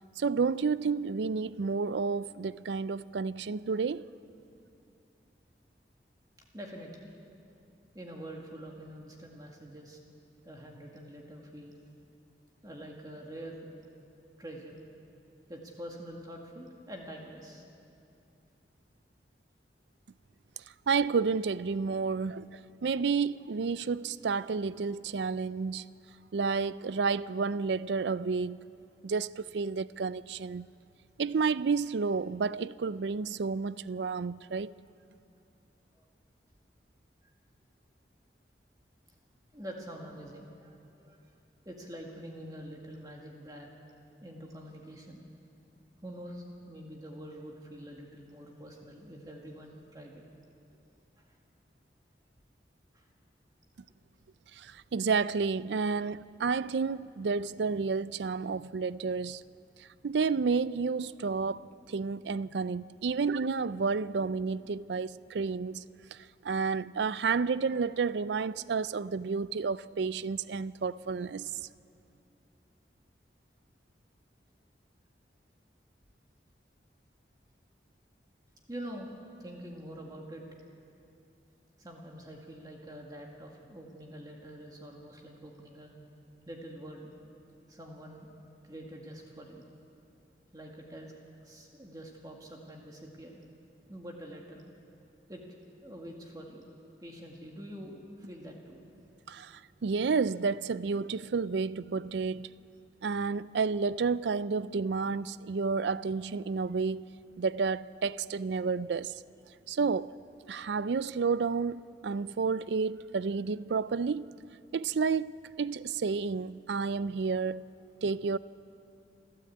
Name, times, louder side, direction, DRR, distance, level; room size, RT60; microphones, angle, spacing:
voice 1, 0.2-4.0 20.9-25.8 26.3-28.6 29.0-30.7 31.2-34.7 54.5-59.4 60.0-65.8 66.1-71.5 99.3-102.5 103.0-107.1 107.4-109.1 109.7-110.1 110.5-114.3 114.7-117.7 118.0-118.4, right 5 dB, 80° right, 0.4 m, -31 dB
voice 2, 6.5-7.1 7.9-10.0 10.4-11.8 12.6-13.7 14.4-14.8 15.5-17.6 35.9-36.0 39.5-41.2 41.7-43.9 44.2-45.2 46.0-50.2 52.9-53.1 78.7-79.1 79.4-80.4 81.8-85.9 86.5-87.1 87.7-88.3 88.6-89.6 90.5-91.1 91.4-93.4 93.9-94.6 95.3-95.4 95.8-96.6 97.0-98.8, equal, 20° right, 1.9 m, -45 dB
28.5 x 13.0 x 8.6 m
head